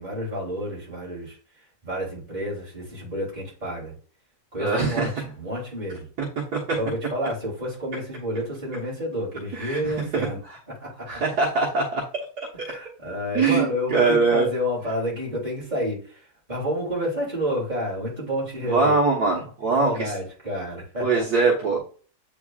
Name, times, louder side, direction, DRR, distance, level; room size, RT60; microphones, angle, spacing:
voice 1, 0.0-1.4 1.8-3.9 4.5-6.1 6.7-10.4 10.8-11.2 12.6-16.2 16.5-19.0 19.8-21.2, equal, 25° right, -4 dB, 3.3 m, -29 dB
voice 2, 4.6-5.1 6.5-6.6 9.5-10.3 11.1-12.0 12.4-12.5 13.3-14.5 18.6-20.1 21.0-21.8, right 4 dB, 65° right, -4 dB, 1.9 m, -22 dB
8.3 x 4.6 x 2.4 m, 0.40 s
omnidirectional pair, 1.8 m